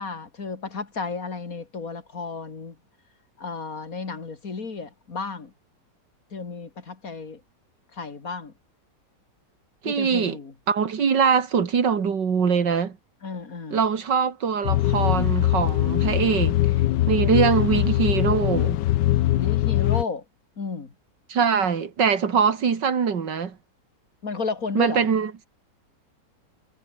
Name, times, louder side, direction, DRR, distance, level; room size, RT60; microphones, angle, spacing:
voice 1, 0.0-2.7 3.4-5.5 6.3-7.4 7.9-8.5 9.8-10.5 13.2-13.8 19.3-20.2 20.6-20.9 24.2-25.0, left 4 dB, 55° left, 2.9 m, -33 dB
voice 2, 9.8-10.4 10.7-13.0 13.7-16.6 17.1-18.8 21.3-23.6 24.7-25.5, right 6 dB, 90° right, 2.7 m, -22 dB
sound 1, 14.6-20.0, left 15 dB, 85° left, 1.3 m, -22 dB
omnidirectional pair, 1.8 m